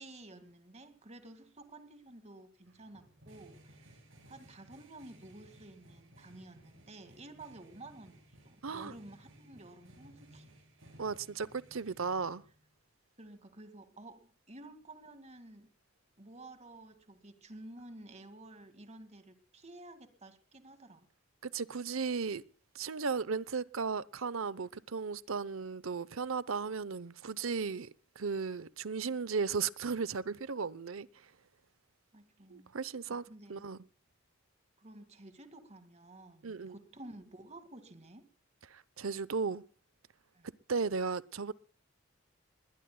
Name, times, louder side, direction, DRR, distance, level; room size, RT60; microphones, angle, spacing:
voice 1, 0.0-4.0 4.3-10.5 13.2-15.7 16.2-21.1 32.1-32.7 33.2-33.9 34.8-38.3 40.3-40.5, right 2 dB, 35° right, 2.1 m, -52 dB
sound 1, 2.6-12.7, right 1 dB, 70° right, 7.6 m, -59 dB
voice 2, 8.6-8.9 11.0-12.4 21.4-22.4 22.7-27.9 28.2-31.1 32.5-33.2 33.5-33.8 36.4-36.8 38.7-39.6 40.7-41.5, right 5 dB, 90° right, 0.8 m, -35 dB
20.5 x 20.5 x 2.3 m
head